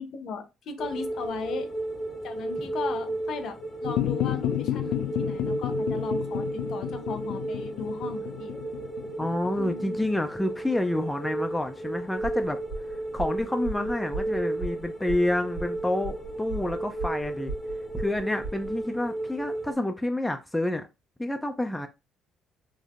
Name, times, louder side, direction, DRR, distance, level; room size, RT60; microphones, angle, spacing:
voice 1, 0.0-1.7 2.2-8.6 9.6-10.0, left 5 dB, 60° left, 0.7 m, -37 dB
sound 1, 0.8-19.7, right 2 dB, 25° left, 0.8 m, -34 dB
sound 2, 3.8-10.4, left 13 dB, 85° left, 0.3 m, -31 dB
voice 2, 9.2-12.6 13.1-17.5 17.9-20.9 21.2-21.9, left 1 dB, 5° left, 0.3 m, -28 dB
sound 3, 12.2-18.8, right 3 dB, 85° right, 1.5 m, -37 dB
3.4 x 2.6 x 2.4 m
cardioid pair, 125°, 0 cm